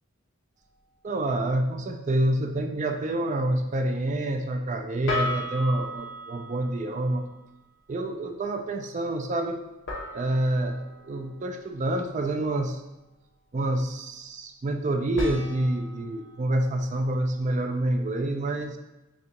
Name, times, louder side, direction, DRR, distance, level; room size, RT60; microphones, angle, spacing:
sound 1, 0.6-0.8 5.1-7.4 9.9-12.4 15.2-18.2, left 1 dB, 60° left, 0.9 m, -37 dB
voice 1, 1.0-7.2 7.9-9.6 10.1-12.8 13.5-18.8, right 1 dB, 35° right, 5 dB, 0.4 m, -27 dB
6.4 x 2.4 x 2.8 m, 1.0 s
head